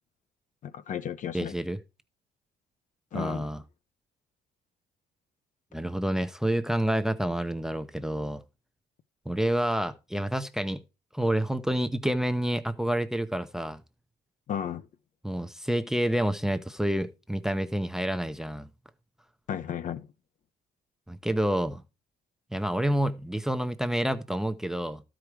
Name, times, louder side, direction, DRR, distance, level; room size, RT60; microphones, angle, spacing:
voice 1, 0.6-1.5 3.1-3.5 14.5-14.9 19.5-20.1, left 9 dB, 50° left, 0.7 m, -34 dB
voice 2, 1.3-1.8 3.1-3.6 5.7-8.4 9.3-10.8 11.1-13.8 15.2-18.7 21.1-21.8 22.5-25.0, right 1 dB, 5° right, 0.7 m, -28 dB
12.5 x 5.0 x 4.6 m
cardioid pair, 110°, 17 cm